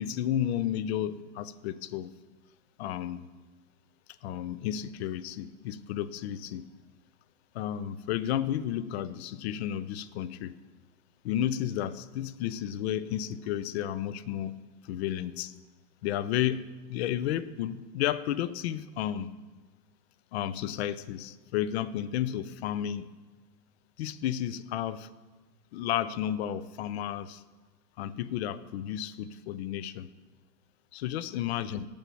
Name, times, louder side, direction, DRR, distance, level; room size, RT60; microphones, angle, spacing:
voice 1, 0.0-2.1 2.8-3.3 4.2-6.7 7.5-10.6 11.2-14.6 14.9-15.5 16.0-19.3 20.3-23.1 24.0-25.1 25.7-27.4 28.0-30.1 30.9-31.8, left 11 dB, 40° left, 16 dB, 0.5 m, -32 dB
8.7 x 6.7 x 7.7 m, 1.3 s
hypercardioid pair, 115°, 50 cm